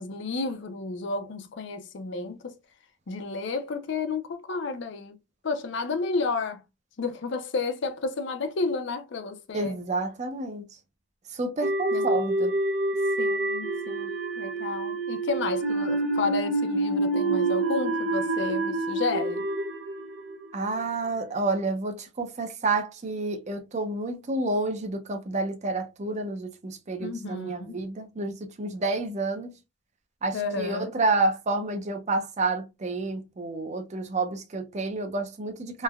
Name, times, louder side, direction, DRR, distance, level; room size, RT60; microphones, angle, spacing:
voice 1, 0.0-2.5 3.1-5.2 5.4-6.6 7.0-9.8 11.9-12.1 13.2-14.1 14.4-19.4 27.0-27.7 30.3-31.0, left 4 dB, 65° left, 0.5 m, -31 dB
voice 2, 9.5-10.6 11.3-12.5 20.5-29.5 30.2-35.8, right 3 dB, 40° right, 0.5 m, -29 dB
sound 1, 11.6-20.8, right 2 dB, 85° right, 0.8 m, -27 dB
3.2 x 2.1 x 2.2 m
head